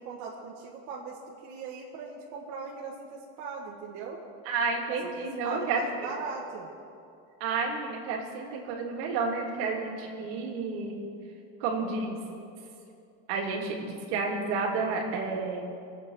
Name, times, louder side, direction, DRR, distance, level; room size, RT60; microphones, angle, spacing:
voice 1, 0.0-4.2 5.4-6.7, right 5 dB, 65° right, -3 dB, 2.0 m, -39 dB
voice 2, 4.4-6.1 7.4-11.0 11.6-12.2 13.3-15.6, right 4 dB, 85° right, -1 dB, 3.1 m, -31 dB
24.0 x 9.0 x 6.6 m, 2.6 s
cardioid pair, 135°, 31 cm